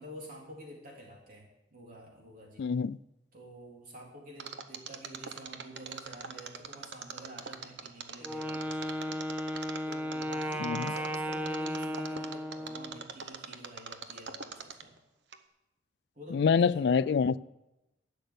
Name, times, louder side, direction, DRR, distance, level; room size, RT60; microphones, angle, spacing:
voice 1, 0.0-2.7 3.3-9.2 9.9-14.9 16.2-17.4, equal, 55° right, -2 dB, 3.6 m, -49 dB
voice 2, 2.6-3.0 10.6-10.9 16.3-17.4, left 6 dB, 65° left, 20 dB, 0.3 m, -26 dB
Mechanisms, 4.4-15.0 15.3-15.4, right 6 dB, 75° right, 0.9 m, -42 dB
Wind instrument woodwind instrument, 8.2-13.1, equal, 10° right, 0.7 m, -35 dB
11.5 x 6.7 x 8.4 m, 0.93 s
head